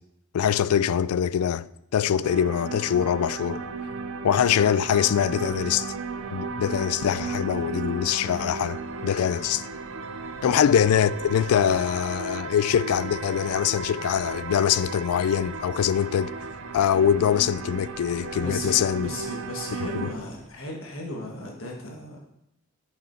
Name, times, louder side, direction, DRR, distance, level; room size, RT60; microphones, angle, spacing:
voice 1, 0.3-1.7 1.9-3.6 4.2-5.9 6.3-9.6 10.4-16.3 16.7-19.1 20.0-20.1, left 8 dB, 90° left, 0.3 m, -23 dB
sound 1, 2.2-20.1, right 4 dB, 65° right, 0.6 m, -35 dB
sound 2, 4.3-20.5, left 1 dB, 35° left, 3.8 m, -51 dB
voice 2, 18.4-22.2, left 2 dB, 65° left, 1.4 m, -36 dB
11.0 x 5.4 x 4.4 m
head